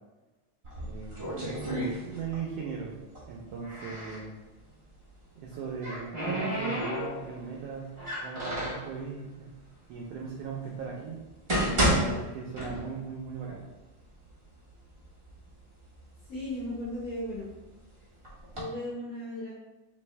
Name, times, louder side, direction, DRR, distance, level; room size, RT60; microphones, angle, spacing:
sound 1, 0.6-2.5 2.8-4.2 5.4-7.4 8.0-8.9 9.7-9.8 10.4-10.5 11.2-13.1 13.5-13.6 14.3-14.4 14.7-15.4 15.9-17.6 18.2-18.6, right 1 dB, 55° right, 0.6 m, -31 dB
voice 1, 0.8-3.0 3.3-4.4 5.4-7.9 8.2-9.5 9.9-11.2 11.8-13.6, right 5 dB, 85° right, -1 dB, 1.4 m, -38 dB
voice 2, 16.2-17.5 18.5-19.5, left 1 dB, 65° left, -7 dB, 1.3 m, -36 dB
4.3 x 3.3 x 3.2 m, 1.1 s
omnidirectional pair, 3.4 m